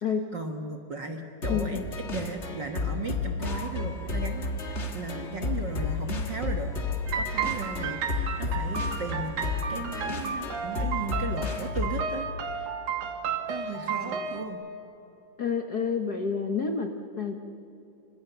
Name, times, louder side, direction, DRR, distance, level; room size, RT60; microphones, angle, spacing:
voice 1, 0.3-1.8 2.1-6.7 7.1-12.7 13.5-14.6, right 4 dB, 50° right, 4 dB, 1.4 m, -36 dB
sound 1, 1.4-12.1, left 4 dB, 35° left, 1.2 m, -32 dB
voice 2, 1.5-1.9 13.8-14.3 15.4-17.3, left 6 dB, 60° left, 5 dB, 1.0 m, -30 dB
sound 2, 3.4-11.0, left 2 dB, 85° left, 5.0 m, -49 dB
sound 3, 7.1-14.5, right 6 dB, 65° right, 3.2 m, -33 dB
28.0 x 26.5 x 6.9 m, 2.9 s
omnidirectional pair, 3.8 m